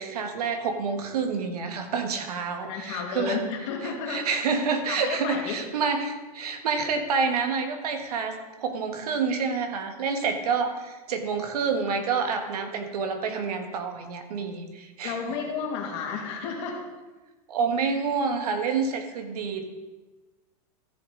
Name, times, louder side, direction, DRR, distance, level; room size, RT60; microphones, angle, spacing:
voice 1, 0.0-3.4 3.8-15.3 17.5-19.7, right 5 dB, 85° right, 6 dB, 1.6 m, -28 dB
voice 2, 2.6-4.4 4.9-5.6 15.0-16.8, left 5 dB, 50° left, 1 dB, 2.4 m, -32 dB
14.0 x 7.2 x 3.9 m, 1.2 s
supercardioid pair, 160°, 19 cm